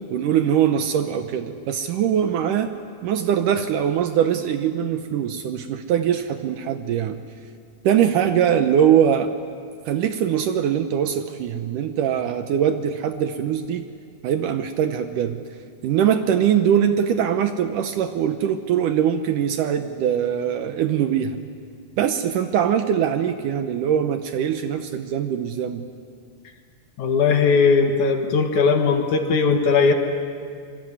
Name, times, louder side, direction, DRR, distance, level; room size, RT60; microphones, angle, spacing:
voice 1, 0.1-2.7 3.0-7.2 7.8-9.3 9.9-13.9 14.2-15.4 15.8-21.4 22.0-25.8, right 9 dB, 70° right, 8 dB, 2.2 m, -22 dB
voice 2, 27.0-29.9, left 5 dB, 60° left, 5 dB, 2.7 m, -18 dB
25.5 x 23.0 x 9.7 m, 2.1 s
omnidirectional pair, 4.3 m